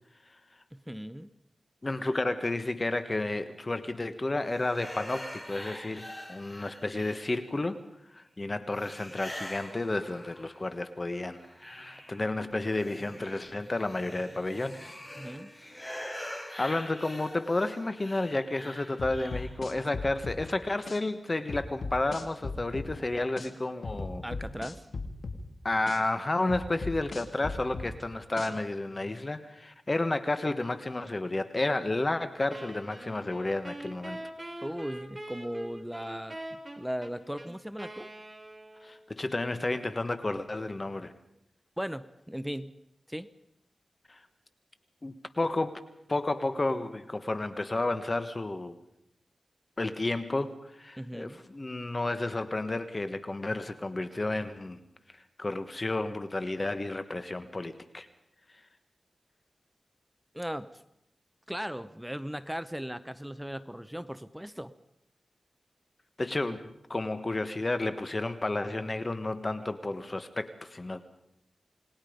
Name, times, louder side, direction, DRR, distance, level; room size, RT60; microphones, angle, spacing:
voice 1, 0.9-1.3 15.2-15.5 24.2-24.8 34.6-38.1 41.8-42.7 43.1-43.3 51.0-51.4 60.3-60.7 61.5-64.7, equal, 5° right, 13 dB, 0.8 m, -37 dB
voice 2, 1.8-7.8 8.1-15.0 16.0-24.2 25.6-34.2 38.8-41.1 44.1-44.2 45.0-45.8 46.1-48.8 49.8-54.8 55.4-58.1 66.2-71.0, left 2 dB, 35° left, 10 dB, 1.4 m, -31 dB
sound 1, 4.5-7.6 8.7-10.7 11.1-19.6, left 1 dB, 15° left, 5.8 m, -44 dB
sound 2, 19.0-20.4 20.9-21.0 21.5-22.9 23.4-23.5 23.8-25.4 25.9-26.0 26.5-27.9 28.4-28.5, left 3 dB, 70° left, 2.5 m, -37 dB
Wind instrument woodwind instrument, 32.5-39.1, right 1 dB, 20° right, 3.9 m, -43 dB
29.0 x 19.5 x 5.2 m, 0.78 s
wide cardioid pair, 65°, 0 cm